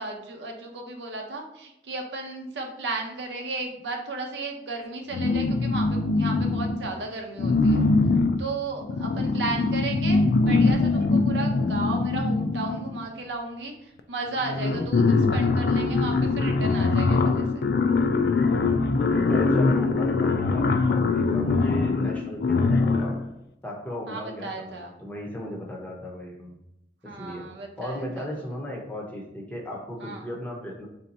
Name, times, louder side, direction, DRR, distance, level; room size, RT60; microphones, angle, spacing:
voice 1, 0.0-7.8 8.4-17.6 24.1-25.0 27.0-28.3 30.0-30.3, right 3 dB, 85° right, 2 dB, 0.7 m, -34 dB
sound 1, 5.1-6.9 7.4-13.1 14.0-14.1 14.4-23.2, left 3 dB, 60° left, 0.3 m, -23 dB
voice 2, 19.1-23.2 23.6-26.6 27.0-27.5 27.8-30.9, left 1 dB, 10° left, -1 dB, 0.7 m, -36 dB
3.3 x 2.7 x 4.1 m, 0.83 s
head